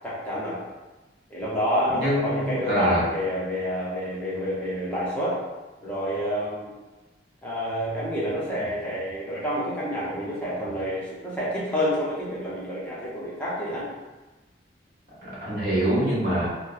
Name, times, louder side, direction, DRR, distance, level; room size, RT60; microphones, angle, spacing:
voice 1, 0.0-0.6 1.3-5.4 5.8-6.7 7.4-13.9, equal, 10° left, -9 dB, 0.6 m, -28 dB
voice 2, 1.9-3.0 15.2-16.5, right 1 dB, 55° right, -8 dB, 1.1 m, -25 dB
2.8 x 2.1 x 2.3 m, 1.2 s
head